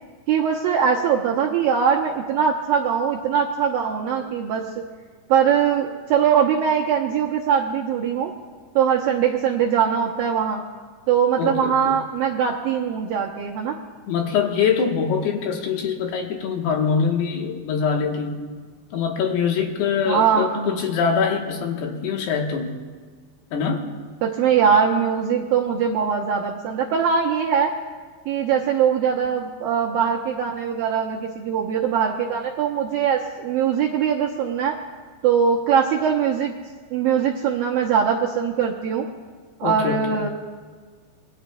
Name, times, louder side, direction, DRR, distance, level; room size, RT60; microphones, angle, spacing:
voice 1, 0.3-4.9 5.3-8.3 8.8-10.6 11.1-13.8 20.1-20.9 24.2-27.7 28.3-34.8 35.2-36.5 36.9-39.1 39.6-40.3, right 7 dB, 75° right, -2 dB, 2.1 m, -21 dB
voice 2, 11.4-12.0 14.1-18.5 18.9-22.8 23.5-23.9 39.6-40.2, left 6 dB, 70° left, 1 dB, 3.1 m, -24 dB
25.5 x 22.0 x 2.3 m, 1.5 s
omnidirectional pair, 5.1 m